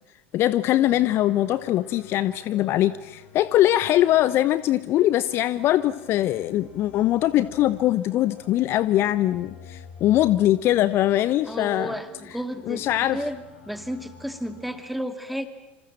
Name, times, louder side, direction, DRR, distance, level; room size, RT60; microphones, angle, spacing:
voice 1, 0.3-11.9 12.7-13.2, left 13 dB, 40° left, 16 dB, 0.8 m, -22 dB
sound 1, 0.8-14.9, left 6 dB, 65° left, 6.8 m, -48 dB
voice 2, 11.5-12.9 13.1-13.4 13.7-15.5, equal, ahead, 9 dB, 2.5 m, -32 dB
27.0 x 26.5 x 7.5 m, 1.0 s
figure-of-eight pair, 80°, 6 cm